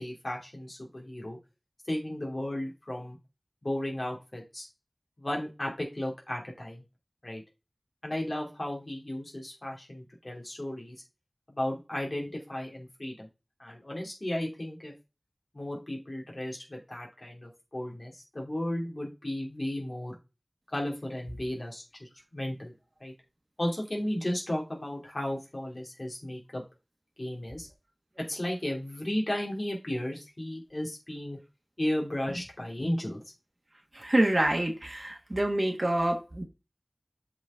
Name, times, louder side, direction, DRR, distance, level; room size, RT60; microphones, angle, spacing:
voice 1, 0.0-1.4 1.9-3.2 3.6-4.7 5.2-6.8 7.2-7.4 8.0-11.0 11.5-13.3 13.6-14.9 15.5-20.2 20.7-22.7 23.0-23.1 23.6-26.6 27.2-27.7 28.3-31.4 31.8-33.2, left 1 dB, 55° left, 2.5 m, -34 dB
voice 2, 33.9-36.4, right 1 dB, 50° right, 1.4 m, -27 dB
7.5 x 4.2 x 3.6 m
wide cardioid pair, 45°, 0 cm